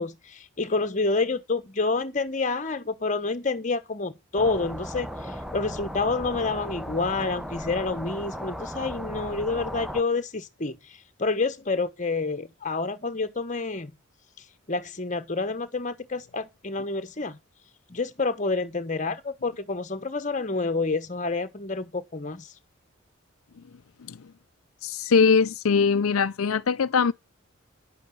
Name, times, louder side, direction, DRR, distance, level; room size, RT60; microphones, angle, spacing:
voice 1, 0.0-5.1 5.5-10.8 11.2-13.9 14.7-17.4 17.9-22.5, left 3 dB, 35° left, 1.2 m, -28 dB
sound 1, 4.4-10.0, equal, ahead, 0.7 m, -36 dB
voice 2, 24.8-27.1, left 5 dB, 80° left, 0.5 m, -21 dB
10.5 x 8.2 x 5.6 m
head